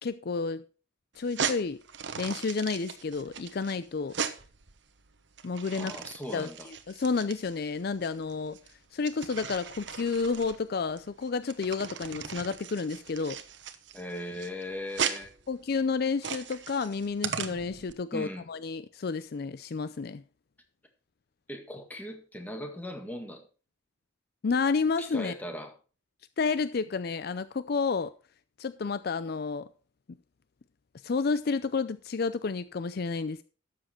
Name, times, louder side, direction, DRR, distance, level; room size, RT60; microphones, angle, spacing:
voice 1, 0.0-0.6 1.2-1.8 2.2-4.1 5.4-6.0 6.3-8.6 8.9-13.4 15.5-20.2 24.4-25.3 26.4-28.1 28.6-29.7 31.0-33.4, left 4 dB, 55° left, 0.5 m, -30 dB
sound 1, 1.2-17.9, right 7 dB, 65° right, 1.0 m, -38 dB
voice 2, 5.7-6.7 13.9-15.3 18.1-18.4 21.5-23.4 25.0-25.7, left 1 dB, 10° left, 1.8 m, -39 dB
12.5 x 7.5 x 4.4 m
head